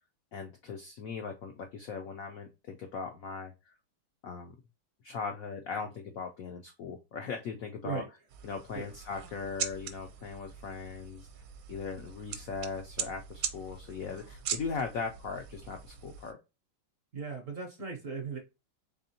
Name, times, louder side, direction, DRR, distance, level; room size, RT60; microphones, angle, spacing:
voice 1, 0.3-3.5 4.2-4.5 5.0-8.0 8.4-11.3 11.7-16.4, left 5 dB, 80° left, 0.7 m, -39 dB
sound 1, 8.3-16.3, right 8 dB, 75° right, 1.4 m, -41 dB
voice 2, 17.1-18.4, right 4 dB, 55° right, 0.9 m, -37 dB
4.1 x 3.5 x 2.7 m
omnidirectional pair, 2.2 m